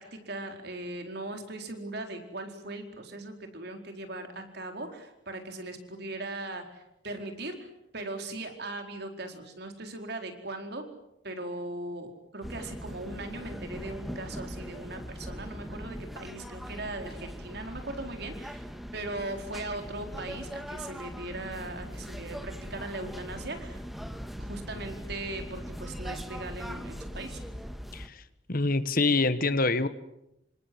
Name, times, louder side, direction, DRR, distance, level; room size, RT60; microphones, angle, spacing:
voice 1, 0.0-10.8 11.2-23.8 24.4-27.4, right 2 dB, 60° right, 5 dB, 4.5 m, -39 dB
sound 1, 12.4-28.1, equal, ahead, 1.9 m, -40 dB
voice 2, 28.5-29.9, left 3 dB, 50° left, 13 dB, 1.4 m, -25 dB
27.5 x 26.0 x 7.9 m, 0.85 s
head